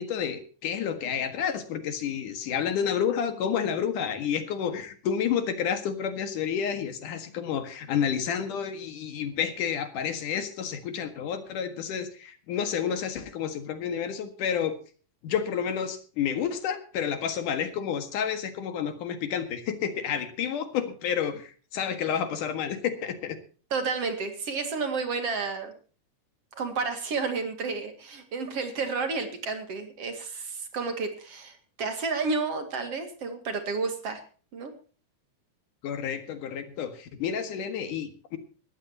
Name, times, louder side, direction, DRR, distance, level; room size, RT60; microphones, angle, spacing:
voice 1, 0.0-14.8 15.2-23.4 35.8-38.4, left 8 dB, 75° left, 8 dB, 3.2 m, -30 dB
voice 2, 23.7-25.7 26.5-34.2 34.5-34.7, right 4 dB, 50° right, 7 dB, 3.0 m, -31 dB
20.5 x 14.0 x 2.9 m, 0.38 s
omnidirectional pair, 3.7 m